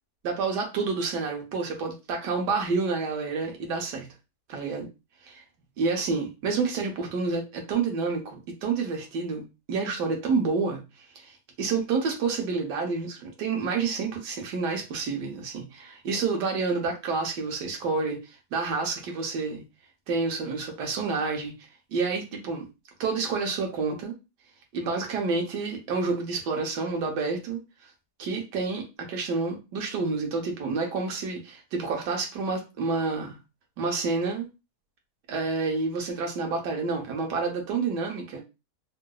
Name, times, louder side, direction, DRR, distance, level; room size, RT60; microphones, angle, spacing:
voice 1, 0.2-4.1 4.5-4.9 5.2-5.4 5.8-10.8 11.1-11.3 11.6-18.2 18.5-19.6 20.1-21.5 21.9-22.6 23.0-24.1 24.7-27.6 28.2-33.4 33.8-34.5 35.3-38.4, right 4 dB, 75° right, 1 dB, 1.4 m, -29 dB
3.8 x 2.6 x 2.3 m, 0.27 s
omnidirectional pair, 1.9 m